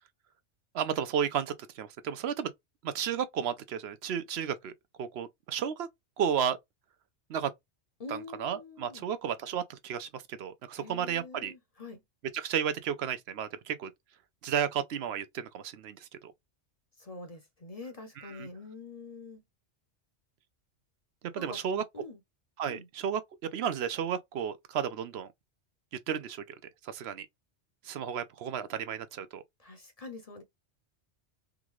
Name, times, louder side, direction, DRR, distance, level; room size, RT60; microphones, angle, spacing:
voice 1, 0.7-2.5 2.8-4.7 5.0-5.9 6.2-6.6 7.3-7.5 8.1-11.5 12.3-13.9 14.4-16.3 18.2-18.5 21.3-21.8 22.6-23.2 23.5-25.3 26.1-26.6 26.8-27.3 27.8-29.4, right 8 dB, 70° right, 0.8 m, -33 dB
voice 2, 8.0-9.1 10.8-12.0 17.0-19.4 21.4-22.2 22.7-22.9 29.6-30.4, left 3 dB, 40° left, 0.7 m, -45 dB
3.7 x 2.4 x 3.0 m
omnidirectional pair, 1.2 m